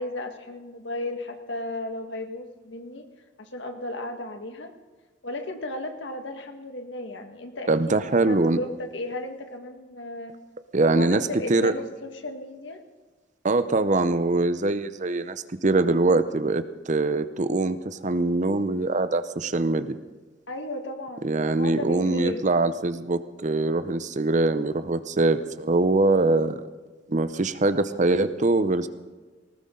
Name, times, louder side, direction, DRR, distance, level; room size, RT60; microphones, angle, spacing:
voice 1, 0.0-3.1 3.4-4.7 5.2-10.3 10.9-12.8 20.5-22.4, left 1 dB, 80° left, 5 dB, 1.8 m, -35 dB
voice 2, 7.7-8.6 10.7-11.2 11.5-11.7 13.4-20.0 21.2-26.6 27.1-28.9, right 2 dB, 40° right, 12 dB, 0.7 m, -23 dB
19.5 x 19.0 x 3.9 m, 1.3 s
head